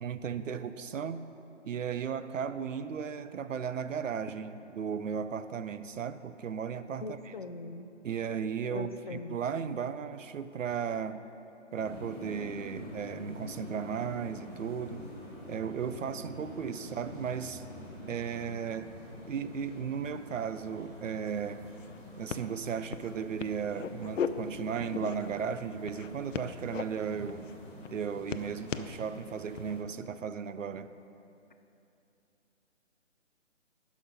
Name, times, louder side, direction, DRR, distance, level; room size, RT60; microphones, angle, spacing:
voice 1, 0.0-1.2 1.7-7.1 8.0-11.2 11.7-15.1 15.5-17.6 18.1-18.9 19.3-21.7 22.2-27.4 27.9-30.9, right 7 dB, 90° right, 12 dB, 0.6 m, -35 dB
voice 2, 7.0-7.9 8.7-9.4, left 3 dB, 45° left, 8 dB, 0.4 m, -40 dB
sound 1, 11.7-29.8, left 1 dB, 20° left, 2.2 m, -47 dB
sound 2, 21.3-21.4 21.6-22.0 22.3-22.5 22.9-23.1 23.4-24.3 24.8-25.4 25.9-26.8 27.3-27.5 27.8-28.9 29.5-29.8, left 7 dB, 90° left, 0.6 m, -37 dB
9.9 x 6.2 x 5.2 m, 2.8 s
hypercardioid pair, 160°, 37 cm